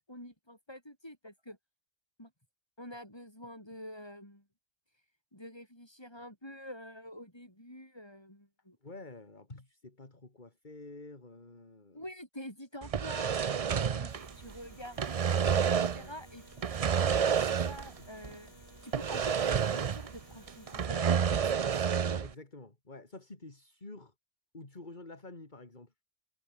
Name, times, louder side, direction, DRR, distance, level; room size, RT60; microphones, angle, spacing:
voice 1, 0.1-1.6 2.2-2.3 2.8-4.4 5.3-8.8 11.9-17.4 17.6-18.5 18.8-19.3 19.7-21.6, left 1 dB, 20° left, 7.9 m, -47 dB
voice 2, 8.8-12.0 13.5-13.8 15.9-16.1 17.8-18.1 22.0-24.1 24.5-25.9, left 2 dB, 40° left, 3.1 m, -49 dB
sound 1, 12.8-14.6 14.8-16.1 16.6-18.0 18.2-18.3 18.9-20.2 20.5-22.3, right 7 dB, 40° right, 0.5 m, -29 dB
sound 2, 14.1-20.9, left 1 dB, 55° left, 6.2 m, -57 dB
omnidirectional pair, 1.2 m